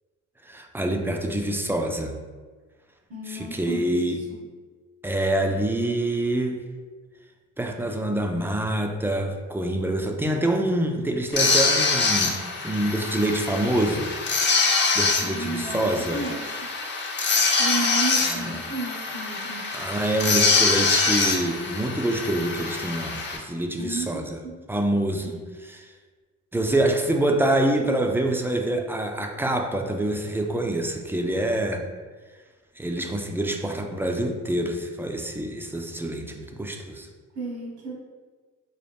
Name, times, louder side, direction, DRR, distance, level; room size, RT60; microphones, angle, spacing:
voice 1, 0.4-2.2 3.3-4.2 5.0-6.6 7.6-12.4 12.6-14.1 14.5-14.7 14.9-16.2 18.3-18.6 19.7-24.4 24.7-25.4 25.6-25.9 26.5-31.9 32.8-37.1, right 1 dB, 5° right, 3 dB, 0.4 m, -26 dB
voice 2, 3.1-4.4 15.2-16.5 17.6-19.6 23.8-24.2 25.2-25.3 37.3-37.9, right 2 dB, 75° right, -2 dB, 1.3 m, -33 dB
sound 1, 11.3-23.4, left 4 dB, 35° left, 0.7 m, -24 dB
4.0 x 2.3 x 3.4 m, 1.4 s
cardioid pair, 90°, 30 cm